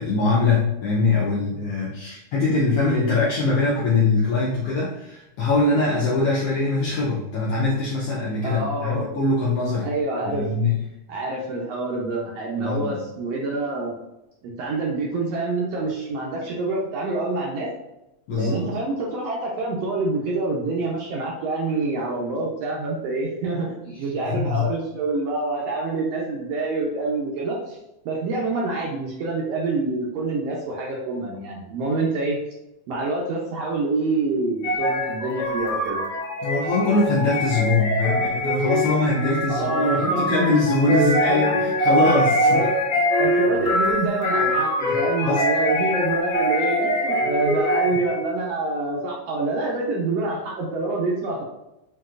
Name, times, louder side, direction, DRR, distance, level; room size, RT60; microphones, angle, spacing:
voice 1, 0.0-9.9 10.2-10.8 12.6-13.0 18.3-18.7 24.3-24.7 36.4-42.6 44.9-45.4, left 3 dB, 75° left, -5 dB, 1.3 m, -22 dB
voice 2, 8.4-9.1 9.8-10.5 11.1-13.9 14.4-17.7 18.3-27.8 28.0-32.4 32.9-36.0 39.5-40.5 40.9-41.5 42.5-51.4, right 3 dB, 75° right, -3 dB, 1.6 m, -26 dB
sound 1, 34.6-48.3, equal, 55° left, 1.6 m, -23 dB
5.9 x 2.9 x 2.4 m, 0.91 s
omnidirectional pair, 3.4 m